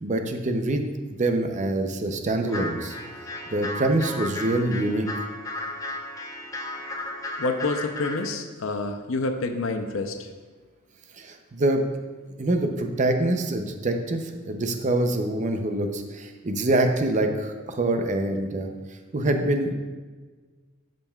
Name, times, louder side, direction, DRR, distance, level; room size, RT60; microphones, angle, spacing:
voice 1, 0.0-3.0 3.5-5.1 11.2-11.8 12.4-18.7 19.1-19.7, right 2 dB, 40° right, 5 dB, 0.6 m, -25 dB
sound 1, 2.5-8.3, left 2 dB, 15° left, 0.7 m, -34 dB
voice 2, 7.4-10.3, left 3 dB, 85° left, 5 dB, 0.6 m, -28 dB
12.5 x 5.2 x 2.3 m, 1.4 s
head